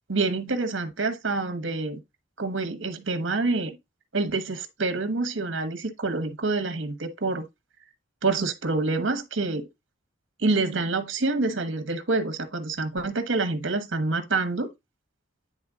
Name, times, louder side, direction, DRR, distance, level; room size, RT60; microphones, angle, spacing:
voice 1, 0.1-2.0 2.4-3.8 4.1-7.4 8.2-9.7 10.4-14.7, right 3 dB, 65° right, 1.2 m, -27 dB
9.8 x 3.4 x 3.6 m
head